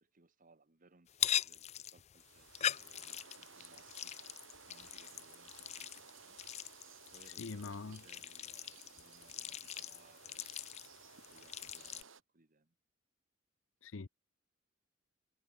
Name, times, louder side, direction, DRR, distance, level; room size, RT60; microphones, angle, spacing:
voice 1, 0.0-4.1 4.7-6.4 7.1-10.5 11.2-12.7, right 3 dB, 45° right, 1.3 m, -66 dB
sound 1, 1.1-12.0, left 10 dB, 35° left, 0.4 m, -42 dB
sound 2, 2.1-12.2, right 6 dB, 70° right, 3.4 m, -58 dB
voice 2, 7.3-8.0 13.8-14.1, left 3 dB, 75° left, 0.8 m, -44 dB
head